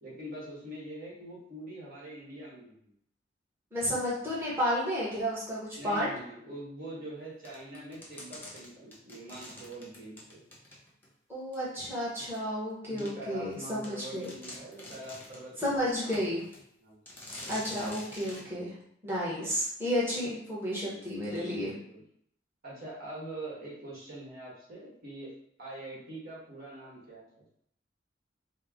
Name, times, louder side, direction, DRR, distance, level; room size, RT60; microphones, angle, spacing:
voice 1, 0.0-2.9 5.7-10.4 12.9-16.4 16.8-17.0 19.3-19.5 20.1-20.3 21.5-22.0 22.6-25.3 25.6-27.4, right 1 dB, 55° right, -6 dB, 1.4 m, -44 dB
voice 2, 3.7-6.1 11.3-14.3 15.6-16.4 17.5-18.7 19.0-21.7, equal, 15° right, -8 dB, 1.1 m, -32 dB
sound 1, 7.4-11.1 11.5-11.6 12.3-12.4 13.0-13.1 13.5-13.6 13.8-15.5 16.1-16.6 17.1-18.5, left 1 dB, 10° left, 0.9 m, -46 dB
4.4 x 2.1 x 3.6 m, 0.72 s
head